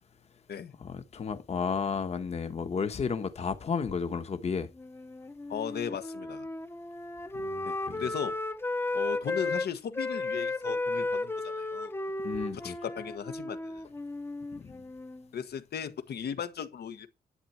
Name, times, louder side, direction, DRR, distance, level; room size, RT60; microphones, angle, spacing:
voice 1, 0.8-4.7 7.4-8.0 12.2-12.8 14.5-14.8, left 6 dB, 40° left, 1.1 m, -33 dB
Wind instrument woodwind instrument, 4.8-9.7 9.9-15.3, left 2 dB, 15° left, 0.7 m, -34 dB
voice 2, 5.5-6.5 7.6-8.4 8.9-11.9 12.5-13.8 15.3-17.1, left 8 dB, 80° left, 1.5 m, -37 dB
11.5 x 8.8 x 4.5 m
wide cardioid pair, 170°, 16 cm